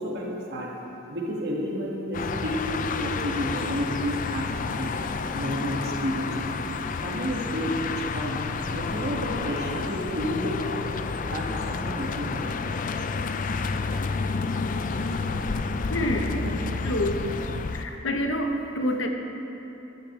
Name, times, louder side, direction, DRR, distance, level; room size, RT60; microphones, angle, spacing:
voice 1, 0.0-4.9 5.3-6.5 7.0-8.4 8.7-10.9 11.3-12.6, equal, 55° right, -2 dB, 2.0 m, -31 dB
sound 1, 2.1-17.8, left 4 dB, 40° left, 0.4 m, -30 dB
voice 2, 15.9-16.4 16.8-17.3 17.7-19.1, left 1 dB, 70° left, 3 dB, 1.1 m, -27 dB
15.0 x 12.5 x 3.3 m, 3.0 s
head